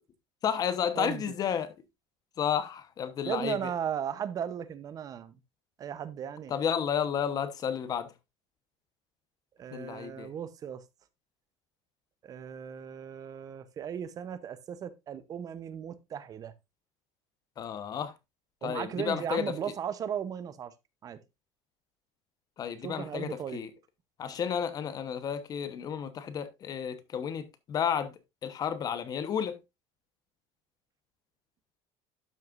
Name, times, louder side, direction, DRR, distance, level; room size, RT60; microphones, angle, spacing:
voice 1, 0.4-1.7 2.4-3.6 6.5-8.1 9.7-10.3 17.6-18.1 18.6-19.5 22.6-23.7 24.2-28.1 28.4-29.6, left 8 dB, 35° left, 1.0 m, -32 dB
voice 2, 0.9-1.3 3.2-5.4 5.8-6.5 9.6-10.8 12.2-16.5 18.6-20.7 21.0-21.2 22.8-23.6, right 8 dB, 30° right, 0.8 m, -36 dB
12.0 x 6.5 x 2.5 m
cardioid pair, 155°, 12 cm